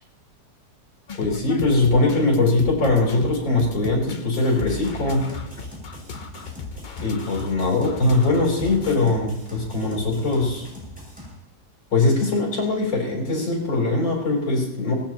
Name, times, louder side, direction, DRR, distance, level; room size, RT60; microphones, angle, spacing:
sound 1, 1.1-9.0, left 4 dB, 65° left, 0.4 m, -36 dB
voice 1, 1.2-5.3 7.0-10.6 11.9-14.9, left 2 dB, 90° left, -2 dB, 4.5 m, -21 dB
sound 2, 4.6-11.3, equal, 5° right, 6.7 m, -41 dB
23.5 x 18.0 x 3.0 m, 0.89 s
omnidirectional pair, 2.0 m